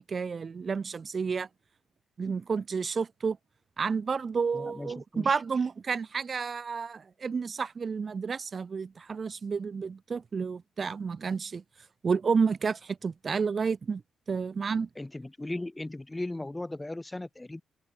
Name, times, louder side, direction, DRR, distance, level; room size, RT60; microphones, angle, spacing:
voice 1, 0.0-1.5 2.2-3.4 3.8-11.6 12.0-14.0 14.3-14.9, right 5 dB, 40° right, 3.2 m, -30 dB
voice 2, 4.5-5.4 15.0-17.6, left 2 dB, 15° left, 2.0 m, -37 dB
cardioid pair, 90°, 0 cm